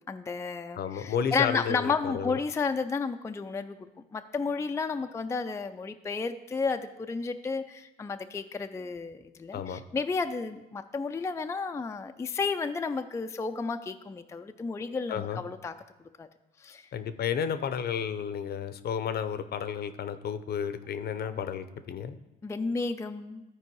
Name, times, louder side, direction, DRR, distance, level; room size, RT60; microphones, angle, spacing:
voice 1, 0.1-3.8 4.1-15.7 16.2-16.3 16.6-16.9 22.4-23.4, left 4 dB, 15° left, 7 dB, 0.4 m, -32 dB
voice 2, 0.8-2.4 9.5-9.8 15.1-15.4 16.9-22.2, left 7 dB, 55° left, 11 dB, 0.7 m, -32 dB
13.0 x 4.6 x 4.6 m, 1.0 s
cardioid pair, 95°, 20 cm